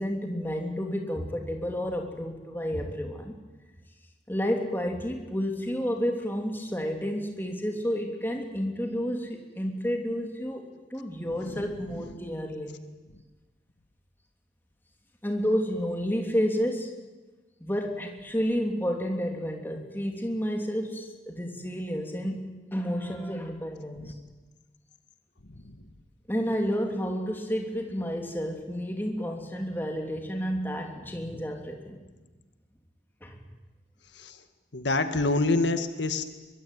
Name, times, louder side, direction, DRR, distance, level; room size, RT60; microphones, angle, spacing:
voice 1, 0.0-3.3 4.3-12.8 15.2-17.0 17.6-24.1 26.3-32.0 33.2-33.4, equal, 10° left, 3 dB, 3.0 m, -30 dB
voice 2, 34.7-36.2, left 2 dB, 80° left, 8 dB, 1.7 m, -26 dB
23.5 x 23.0 x 9.4 m, 1.2 s
head